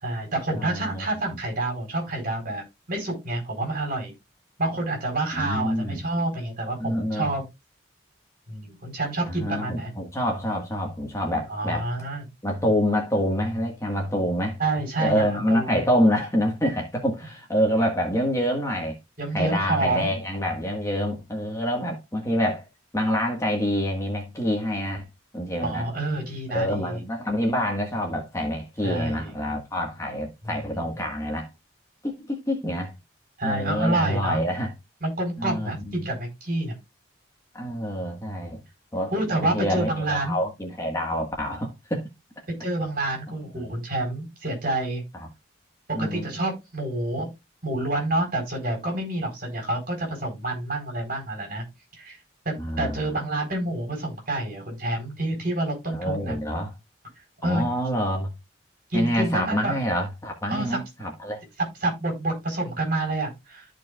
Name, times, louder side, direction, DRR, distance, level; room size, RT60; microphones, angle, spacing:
voice 1, 0.0-2.6 2.9-4.1 4.6-7.4 8.5-9.9 11.5-12.2 14.6-15.7 19.2-20.2 25.6-27.0 28.8-29.3 30.4-30.8 33.4-34.4 35.0-36.8 39.1-40.4 42.6-45.0 46.0-47.3 47.6-51.6 52.0-52.2 52.4-56.4 57.4-57.6 58.9-59.8 60.5-61.1 61.6-63.7, right 2 dB, 45° right, 4.4 m, -28 dB
voice 2, 0.6-1.0 5.4-6.0 6.8-7.3 9.3-11.8 12.4-14.6 15.0-19.0 19.3-22.6 22.9-25.1 25.3-25.9 26.5-31.5 32.0-32.9 33.4-34.7 35.4-35.9 37.5-38.6 38.9-39.1 39.4-42.1 43.5-43.6 45.9-46.3 52.6-53.0 55.9-56.7 57.4-58.3 58.9-61.4, equal, 15° left, 1.6 m, -26 dB
14.0 x 4.7 x 2.4 m
head